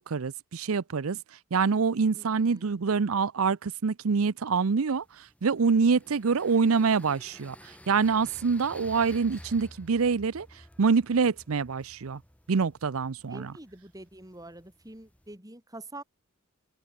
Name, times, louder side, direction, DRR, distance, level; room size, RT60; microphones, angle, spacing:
voice 1, 0.1-1.2 1.5-5.0 5.4-7.6 7.9-10.5 10.8-12.2 12.5-13.5, right 5 dB, 85° right, 0.6 m, -25 dB
voice 2, 2.1-2.7 13.3-16.0, right 2 dB, 15° right, 3.4 m, -46 dB
sound 1, 4.9-15.4, left 1 dB, 5° left, 3.0 m, -52 dB
head